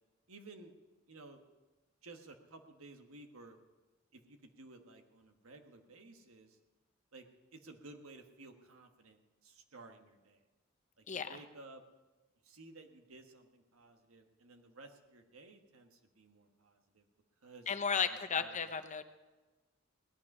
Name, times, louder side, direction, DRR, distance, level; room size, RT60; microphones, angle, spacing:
voice 1, 0.3-0.7 1.1-1.4 2.0-3.6 4.1-6.6 7.1-7.2 7.5-10.4 11.0-11.8 12.4-17.1 17.4-17.7 18.3-18.8, right 2 dB, 90° right, 5 dB, 1.4 m, -55 dB
voice 2, 11.1-11.4 17.7-19.0, left 6 dB, 35° left, 9 dB, 0.8 m, -34 dB
17.5 x 11.0 x 5.4 m, 1.2 s
head